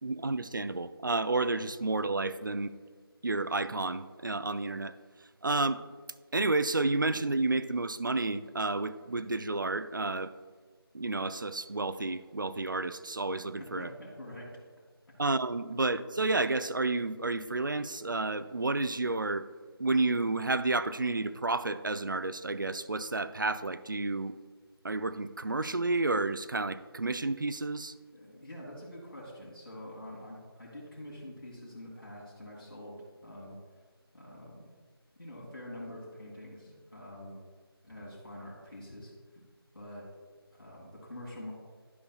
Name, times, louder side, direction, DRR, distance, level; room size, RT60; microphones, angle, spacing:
voice 1, 0.0-2.7 3.2-5.0 5.4-5.8 6.3-10.3 10.9-13.9 15.2-19.5 19.8-24.3 24.8-27.9, right 3 dB, 55° right, 13 dB, 0.4 m, -31 dB
voice 2, 13.8-14.6 28.1-33.6 34.1-34.7 35.2-37.4 37.8-39.4 39.7-40.1 40.5-41.5, left 1 dB, 60° left, -5 dB, 2.3 m, -46 dB
11.5 x 6.2 x 2.3 m, 1.5 s
figure-of-eight pair, 180°, 13 cm